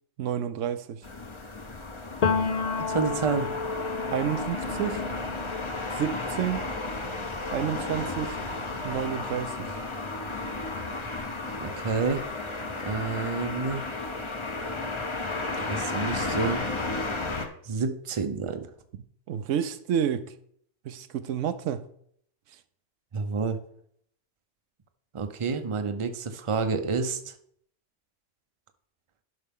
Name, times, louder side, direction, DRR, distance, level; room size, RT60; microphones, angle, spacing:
voice 1, 0.2-1.0 4.1-5.0 5.9-6.7 7.5-8.4 8.8-9.8 19.3-20.3 20.8-21.8, right 9 dB, 80° right, 1.0 m, -30 dB
sound 1, 1.0-17.5, left 3 dB, 25° left, 0.8 m, -33 dB
Piano, 2.2-9.8 10.2-11.7, left 5 dB, 65° left, 0.4 m, -34 dB
voice 2, 2.9-3.5 11.6-12.3 12.8-13.8 15.7-16.6 17.6-18.7 23.1-23.6 25.1-27.3, right 4 dB, 35° right, 0.6 m, -29 dB
11.0 x 5.6 x 3.7 m
omnidirectional pair, 1.3 m